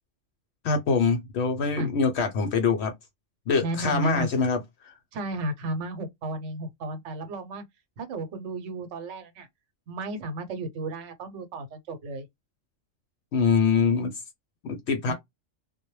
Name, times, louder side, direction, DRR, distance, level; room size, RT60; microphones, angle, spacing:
voice 1, 0.6-2.9 3.5-4.6 13.3-14.1 14.6-15.1, left 5 dB, 65° left, 0.8 m, -24 dB
voice 2, 3.6-4.3 5.1-7.6 8.0-9.5 9.9-12.3 15.1-15.2, right 2 dB, 80° right, 1.0 m, -33 dB
2.1 x 2.1 x 3.0 m
omnidirectional pair, 1.2 m